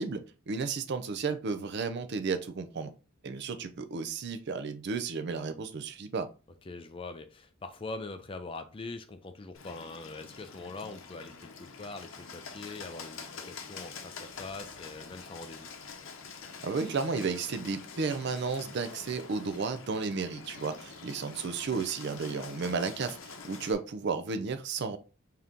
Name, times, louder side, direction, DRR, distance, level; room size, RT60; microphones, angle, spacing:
voice 1, 0.0-2.9 3.2-6.3 16.6-25.0, right 4 dB, 55° right, 0.4 m, -33 dB
voice 2, 6.6-15.7, left 3 dB, 25° left, 0.4 m, -43 dB
Bird, 9.5-23.7, left 5 dB, 70° left, 0.7 m, -46 dB
3.8 x 2.8 x 3.5 m
head